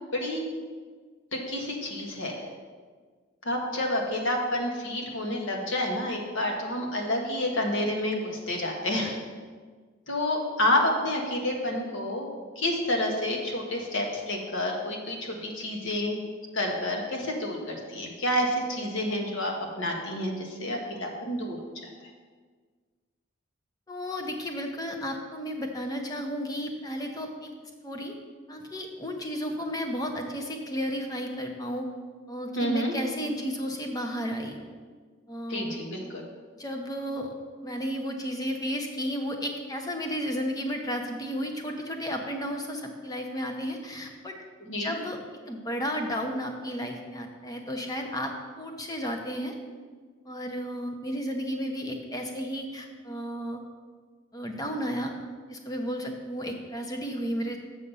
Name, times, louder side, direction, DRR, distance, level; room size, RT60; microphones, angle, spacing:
voice 1, 0.1-0.4 1.3-2.4 3.4-9.2 10.1-12.3 12.6-16.2 16.5-21.6 21.8-21.9 32.5-32.9 35.5-36.2 44.7-44.9, left 1 dB, 70° left, 1 dB, 1.5 m, -29 dB
voice 2, 23.9-27.5 27.8-28.2 28.5-31.9 32.3-34.6 35.3-35.8 36.5-37.3 37.6-44.4 44.7-45.2 45.5-49.5 50.3-53.6 54.3-55.1 55.5-57.6, equal, 20° left, 3 dB, 0.9 m, -33 dB
7.4 x 6.5 x 5.5 m, 1.5 s
head